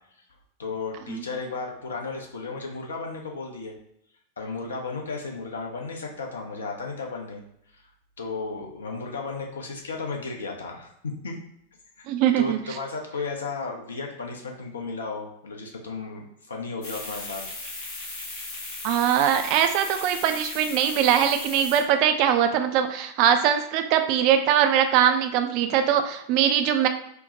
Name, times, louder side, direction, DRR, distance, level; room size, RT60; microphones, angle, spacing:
voice 1, 0.6-3.7 4.4-7.4 7.7-7.8 8.2-11.4 12.0-12.1 12.4-17.4, left 4 dB, 70° left, 1 dB, 0.6 m, -34 dB
voice 2, 12.1-12.6 18.8-26.9, right 9 dB, 45° right, 7 dB, 0.3 m, -21 dB
sound 1, 16.8-21.8, left 2 dB, 55° left, 1.0 m, -37 dB
4.3 x 2.1 x 2.7 m, 0.75 s
figure-of-eight pair, 90°, 0 cm